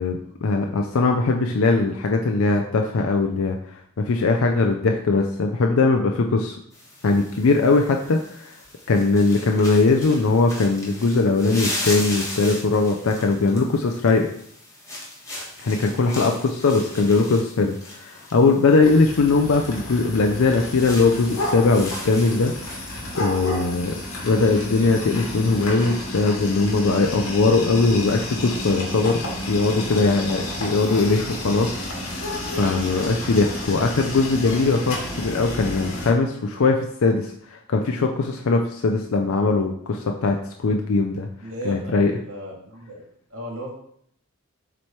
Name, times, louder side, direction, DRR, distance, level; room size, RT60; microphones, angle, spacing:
voice 1, 0.0-6.6 7.0-8.6 8.9-14.3 15.6-22.9 23.2-32.3 32.6-41.3 41.7-42.1, left 3 dB, 70° left, 3 dB, 0.5 m, -20 dB
sound 1, 6.7-25.7, left 1 dB, 15° left, 1.4 m, -37 dB
sound 2, 18.8-36.1, left 1 dB, 90° left, 1.8 m, -31 dB
voice 2, 41.4-43.0 43.3-43.8, equal, 75° right, -2 dB, 2.1 m, -35 dB
7.6 x 3.1 x 4.4 m, 0.68 s
head